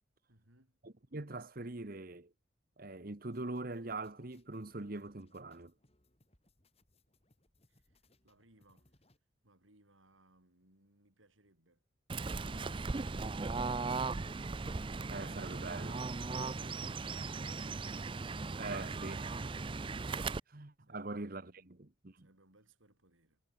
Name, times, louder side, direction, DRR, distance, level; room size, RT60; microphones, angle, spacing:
voice 1, 0.3-0.8 7.7-9.1 9.4-11.8 20.9-21.8 22.1-23.4, right 1 dB, 85° right, 7.4 m, -68 dB
voice 2, 0.8-2.3 2.8-5.7 15.1-16.5 18.6-19.4 20.5-22.3, right 2 dB, 45° right, 1.2 m, -43 dB
sound 1, 3.3-9.2, left 1 dB, 30° left, 4.1 m, -71 dB
Fowl / Bird, 12.1-20.4, right 3 dB, 25° right, 0.5 m, -38 dB
head